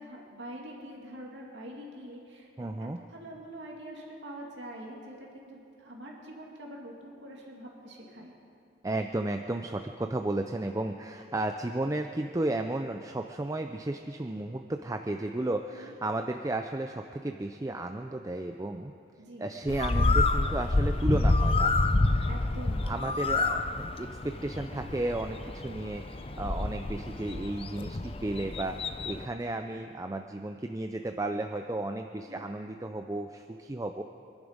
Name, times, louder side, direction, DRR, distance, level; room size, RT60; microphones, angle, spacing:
voice 1, 0.0-8.4 15.7-15.9 19.2-19.5 22.2-22.9 24.7-25.0 29.3-29.6 32.3-32.5, right 1 dB, 70° right, -2 dB, 2.4 m, -45 dB
voice 2, 2.6-3.0 8.8-18.9 19.4-21.7 22.1-22.3 22.8-34.0, right 2 dB, 20° right, 5 dB, 0.5 m, -33 dB
Bird, 19.7-29.3, left 2 dB, 30° left, 0.5 m, -28 dB
25.0 x 11.0 x 5.2 m, 2.5 s
head